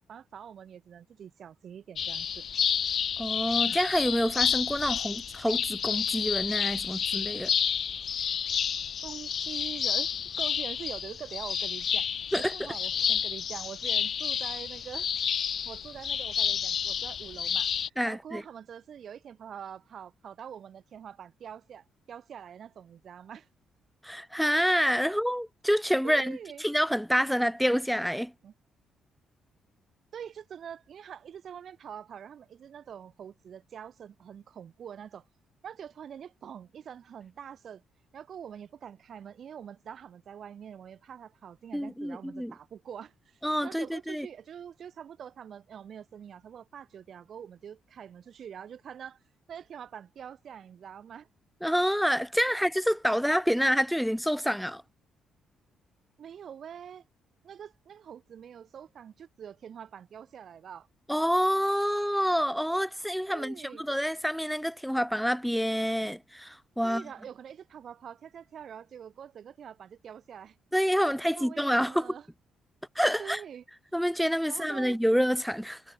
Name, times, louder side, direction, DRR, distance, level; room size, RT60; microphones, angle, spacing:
voice 1, 0.0-2.4 9.0-12.1 12.4-15.1 15.6-23.5 25.1-25.2 26.0-26.6 28.4-28.5 30.1-35.3 35.6-37.8 38.1-49.2 49.5-51.3 52.5-52.6 56.2-57.0 57.4-60.9 63.3-63.8 66.8-70.6 71.0-72.3 73.2-73.6 74.4-75.0, right 8 dB, 60° right, 4.0 m, -45 dB
sound 1, 2.0-17.9, left 8 dB, 55° left, 0.6 m, -30 dB
voice 2, 3.2-7.5 12.3-12.5 18.0-18.4 24.0-28.3 41.7-42.5 43.4-44.3 51.6-54.8 61.1-67.0 70.7-72.1 73.0-73.4 73.9-75.8, equal, ahead, 0.5 m, -27 dB
cardioid pair, 90°, 0 cm